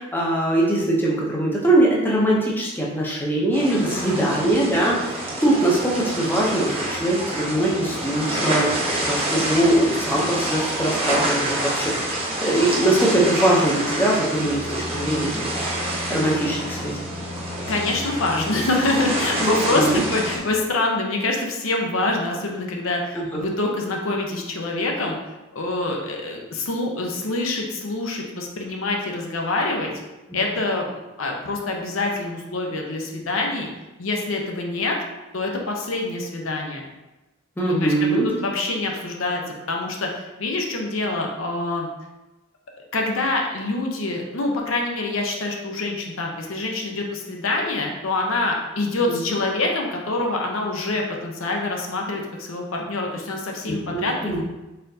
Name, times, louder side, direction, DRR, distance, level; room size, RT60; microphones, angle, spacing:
voice 1, 0.0-11.9 12.4-15.3 16.1-17.0 19.5-20.0 23.1-23.4 37.6-38.3 49.1-49.2 53.7-54.4, right 1 dB, 10° left, -4 dB, 0.7 m, -22 dB
sound 1, 3.5-20.4, right 1 dB, 30° right, 0.9 m, -27 dB
voice 2, 3.7-4.3 17.7-25.2 25.5-29.9 30.3-30.9 31.2-33.7 34.0-35.0 35.3-36.9 37.7-39.4 39.7-41.9 42.9-54.4, left 2 dB, 80° left, 1 dB, 0.7 m, -25 dB
4.2 x 3.8 x 2.7 m, 1.0 s
head